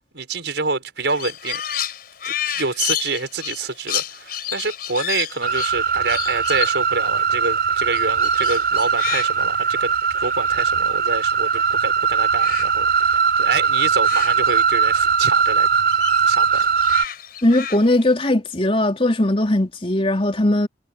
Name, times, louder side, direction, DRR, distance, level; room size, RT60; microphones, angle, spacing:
voice 1, 0.1-1.6 2.2-9.9 10.2-15.7 16.3-16.6, right 4 dB, 80° right, 5.3 m, -27 dB
Crow, 1.1-11.8 12.1-15.1 15.4-18.1, left 10 dB, 60° left, 4.4 m, -32 dB
sound 1, 5.4-17.0, right 6 dB, 60° right, 7.3 m, -20 dB
voice 2, 17.4-20.7, left 1 dB, 35° left, 3.8 m, -19 dB
head